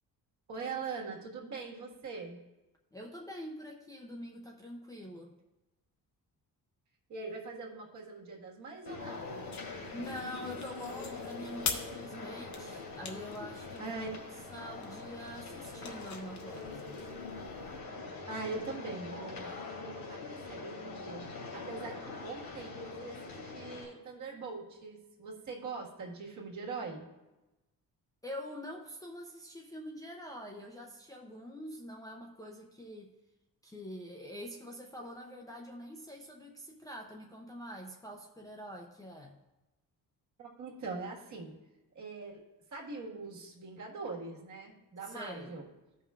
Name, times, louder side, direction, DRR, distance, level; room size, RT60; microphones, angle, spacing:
voice 1, 0.5-2.4 7.1-9.3 13.8-14.2 18.3-19.6 19.8-27.0 40.4-41.5 41.9-42.4 42.7-45.7, right 4 dB, 55° right, -1 dB, 1.6 m, -42 dB
voice 2, 2.9-5.4 9.9-14.0 14.5-17.0 28.2-33.1 33.6-39.4 45.0-45.6, equal, 10° left, -1 dB, 0.4 m, -45 dB
sound 1, 8.9-23.9, left 3 dB, 85° left, 2.4 m, -43 dB
sound 2, 9.0-17.8, left 5 dB, 50° left, 0.9 m, -45 dB
15.0 x 5.6 x 2.4 m, 1.0 s
cardioid pair, 165°, 35 cm